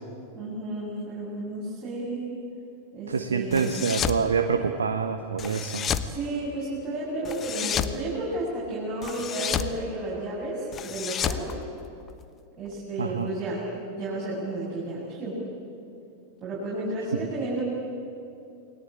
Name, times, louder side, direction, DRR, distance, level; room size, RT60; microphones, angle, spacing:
voice 1, 0.3-2.3 2.9-3.7 6.0-11.5 12.6-15.4 16.4-17.6, right 1 dB, 25° right, -7 dB, 7.3 m, -32 dB
voice 2, 3.1-5.9 13.0-13.3 17.1-17.2, right 6 dB, 70° right, 6 dB, 1.2 m, -26 dB
sound 1, 3.5-4.2 5.4-6.1 7.2-8.0 9.0-9.7 10.7-12.2, left 8 dB, 25° left, 1.1 m, -30 dB
29.0 x 20.5 x 8.7 m, 2.6 s
figure-of-eight pair, 90°, 0 cm